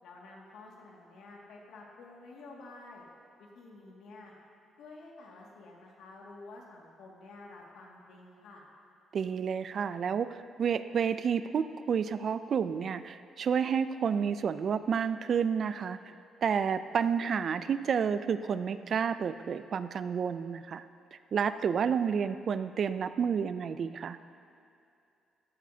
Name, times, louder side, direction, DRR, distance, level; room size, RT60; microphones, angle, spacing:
voice 1, 0.0-3.0 3.4-4.3 4.8-8.6, left 3 dB, 80° left, -2 dB, 2.0 m, -50 dB
voice 2, 9.1-16.0 16.4-20.8 21.1-24.2, right 7 dB, 55° right, 12 dB, 0.4 m, -30 dB
14.5 x 10.5 x 2.8 m, 2.6 s
cardioid pair, 90°, 0 cm